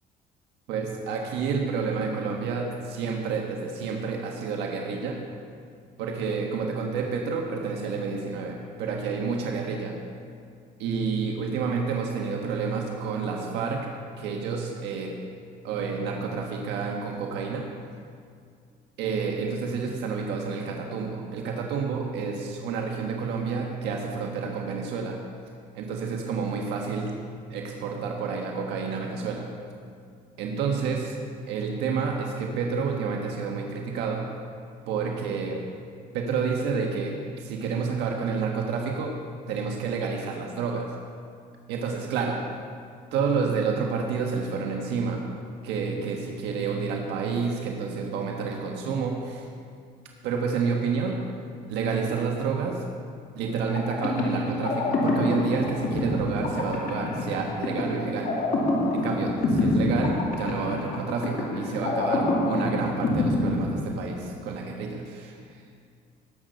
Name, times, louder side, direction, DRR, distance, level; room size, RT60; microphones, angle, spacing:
voice 1, 0.7-5.1 6.0-9.9 10.8-13.9 14.2-15.1 15.6-17.6 19.0-25.1 25.7-27.1 27.5-29.5 30.4-31.1 31.5-34.2 34.9-35.6 36.1-39.1 39.5-40.9 41.7-42.4 43.1-45.2 45.6-49.5 50.2-51.2 51.7-52.8 53.3-58.3 58.9-65.3, right 5 dB, 90° right, 0 dB, 1.6 m, -29 dB
sound 1, 53.7-64.4, left 2 dB, 55° left, 2.4 m, -27 dB
19.0 x 7.9 x 5.4 m, 2.2 s
cardioid pair, 110°, 17 cm